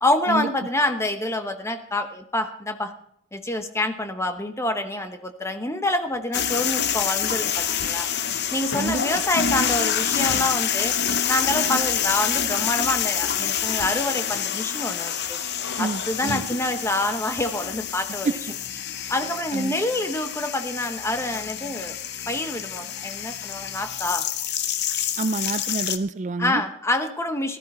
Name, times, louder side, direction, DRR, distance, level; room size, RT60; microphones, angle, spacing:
voice 1, 0.0-2.9 3.3-8.1 8.5-15.4 15.8-18.4 19.1-22.0 22.3-24.3 26.4-27.6, left 1 dB, 15° left, 7 dB, 1.0 m, -27 dB
sound 1, 6.3-26.0, left 9 dB, 55° left, 0.8 m, -27 dB
voice 2, 8.7-9.2 15.8-16.4 18.2-18.3 19.5-19.7 25.2-26.6, right 3 dB, 35° right, 13 dB, 0.4 m, -28 dB
15.0 x 13.0 x 4.3 m, 0.70 s
head